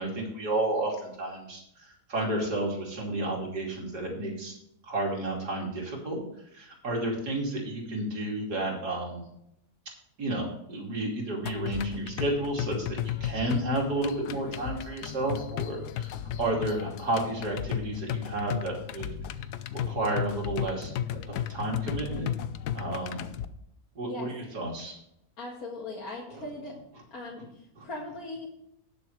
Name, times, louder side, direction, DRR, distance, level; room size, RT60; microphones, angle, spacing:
voice 1, 0.0-4.5 4.9-6.2 6.5-9.2 10.2-19.1 19.7-22.3 22.7-23.2 23.9-25.0 27.8-27.9, right 2 dB, 85° right, -1 dB, 3.4 m, -31 dB
sound 1, 11.5-23.5, left 10 dB, 85° left, 1.2 m, -34 dB
voice 2, 25.4-26.7 27.1-28.5, left 2 dB, 65° left, -4 dB, 2.3 m, -39 dB
18.5 x 7.0 x 3.2 m, 0.77 s
omnidirectional pair, 1.7 m